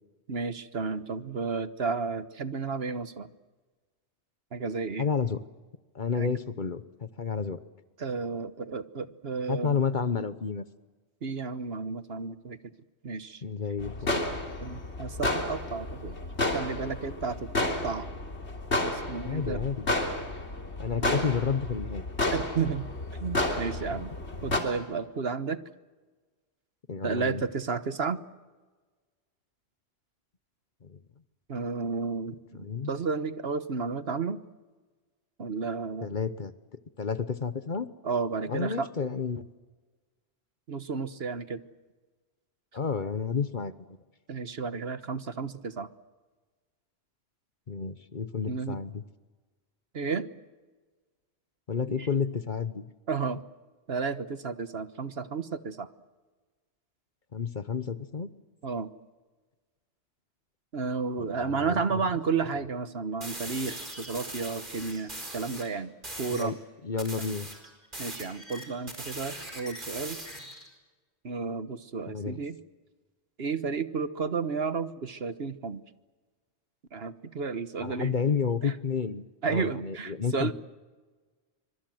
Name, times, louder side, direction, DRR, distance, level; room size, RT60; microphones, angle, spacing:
voice 1, 0.3-3.3 4.5-5.1 6.1-6.3 8.0-9.8 11.2-12.6 13.0-13.4 14.6-16.1 16.5-18.1 18.8-19.6 21.0-21.3 22.3-22.9 23.2-24.1 24.4-25.6 27.0-28.2 31.5-34.4 35.4-36.1 38.0-38.9 40.7-41.6 44.3-45.9 48.5-48.8 49.9-50.3 51.9-52.1 53.1-53.4 53.9-55.9 58.6-58.9 60.7-65.9 66.2-66.6 68.0-70.2 71.2-72.6 73.4-75.8 76.9-78.2 78.6-78.8 79.4-80.5, right 5 dB, 60° right, 12 dB, 1.4 m, -32 dB
voice 2, 5.0-5.4 5.9-6.8 7.2-7.6 9.5-10.6 13.4-14.2 19.2-19.9 20.8-22.0 26.9-27.4 32.6-32.9 36.0-36.5 37.0-37.9 38.5-39.5 42.7-43.7 47.7-49.0 51.7-52.8 57.3-58.3 61.5-61.8 66.3-66.5 66.8-67.5 72.1-72.4 77.8-80.5, left 6 dB, 45° left, 13 dB, 1.1 m, -30 dB
sound 1, 13.8-24.6, left 1 dB, 70° left, 3.5 m, -31 dB
sound 2, 63.2-65.7 66.0-66.5 67.0-70.7, right 1 dB, 45° right, 4.8 m, -40 dB
25.5 x 25.5 x 7.8 m, 1.3 s
omnidirectional pair, 1.2 m